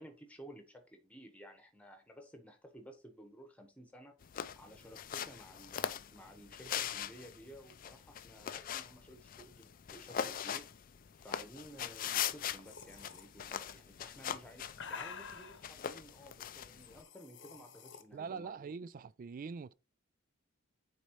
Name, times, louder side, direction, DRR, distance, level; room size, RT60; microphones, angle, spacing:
voice 1, 0.0-4.2 4.6-10.7 11.2-18.8, equal, 5° left, 1.3 m, -54 dB
sound 1, 4.2-17.0, left 9 dB, 40° left, 0.4 m, -41 dB
sound 2, 12.6-13.3 14.2-15.6 16.7-18.0, left 6 dB, 55° left, 0.9 m, -48 dB
voice 2, 18.1-19.7, right 5 dB, 40° right, 0.3 m, -43 dB
9.4 x 4.1 x 3.1 m
head